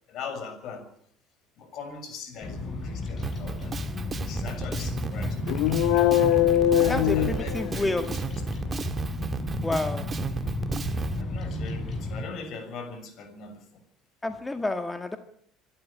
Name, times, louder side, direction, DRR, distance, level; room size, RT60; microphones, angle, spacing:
voice 1, 0.1-0.9 1.6-3.9 4.3-5.5 6.8-8.6 10.9-13.6, left 5 dB, 55° left, 8 dB, 6.6 m, -40 dB
Bird vocalization bird call bird song, 2.4-12.2, left 2 dB, 40° left, 7.6 m, -33 dB
Drum kit, 3.2-11.2, right 5 dB, 30° right, 1.6 m, -34 dB
sound 1, 5.5-8.0, left 12 dB, 75° left, 1.3 m, -22 dB
voice 2, 6.9-8.2 9.6-10.1 14.2-15.2, left 2 dB, 15° left, 7 dB, 1.9 m, -29 dB
25.5 x 12.5 x 8.7 m, 0.63 s
hypercardioid pair, 80°, 0 cm